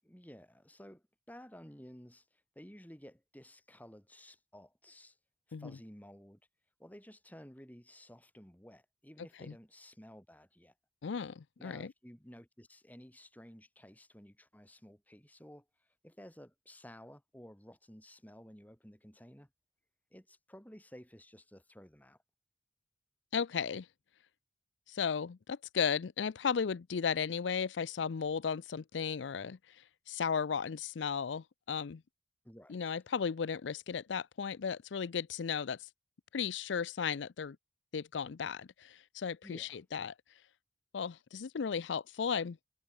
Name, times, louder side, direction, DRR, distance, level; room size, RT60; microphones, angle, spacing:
voice 1, 0.0-5.2 5.6-6.4 6.8-10.7 11.6-19.5 20.1-22.2 32.4-33.0 39.4-39.8, equal, 10° left, 8.0 m, -54 dB
voice 2, 11.0-11.9 23.3-23.9 24.9-29.8 30.1-32.0 32.7-35.9 36.3-37.6 37.9-40.1 40.9-42.6, left 6 dB, 80° left, 0.5 m, -35 dB
head